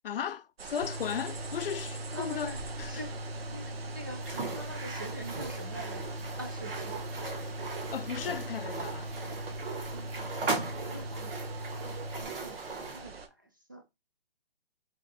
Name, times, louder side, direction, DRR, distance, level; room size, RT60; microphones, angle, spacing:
voice 1, 0.0-3.0 7.9-9.1, left 8 dB, 65° left, 0.5 m, -36 dB
sound 1, 0.6-13.3, right 4 dB, 80° right, 0.9 m, -45 dB
sound 2, 0.8-12.2, equal, 40° right, 0.9 m, -40 dB
voice 2, 2.1-2.6 2.9-3.1 3.5-6.0 6.4-7.0 9.9-10.3 10.6-11.5 12.2-12.6 12.9-13.3 13.7-13.8, right 1 dB, 20° right, 0.4 m, -44 dB
sound 3, 4.2-13.0, right 3 dB, 65° right, 1.2 m, -39 dB
3.5 x 2.5 x 3.9 m
hypercardioid pair, 165°, 30 cm